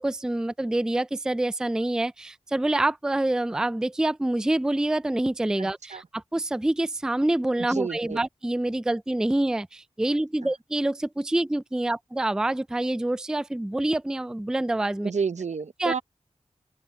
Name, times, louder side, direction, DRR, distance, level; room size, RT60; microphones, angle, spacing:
voice 1, 0.0-15.1 15.8-16.0, right 1 dB, 5° right, 0.3 m, -26 dB
voice 2, 5.6-6.0 7.8-8.2 15.0-16.0, right 5 dB, 75° right, 0.7 m, -30 dB
open air
wide cardioid pair, 50°, 12 cm